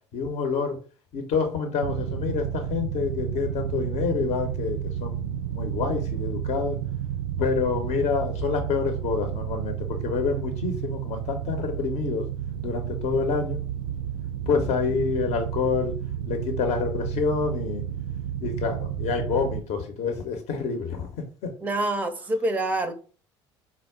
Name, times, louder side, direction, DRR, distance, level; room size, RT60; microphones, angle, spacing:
voice 1, 0.1-0.8 1.1-6.8 7.4-12.2 12.6-13.6 14.5-15.9 16.2-17.8 18.4-21.5, left 5 dB, 50° left, 5 dB, 0.7 m, -27 dB
sound 1, 1.8-19.6, right 10 dB, 70° right, 0.4 m, -31 dB
voice 2, 21.6-22.9, right 2 dB, 10° right, 10 dB, 0.5 m, -26 dB
4.5 x 2.0 x 3.6 m, 0.38 s
figure-of-eight pair, 60°, 15 cm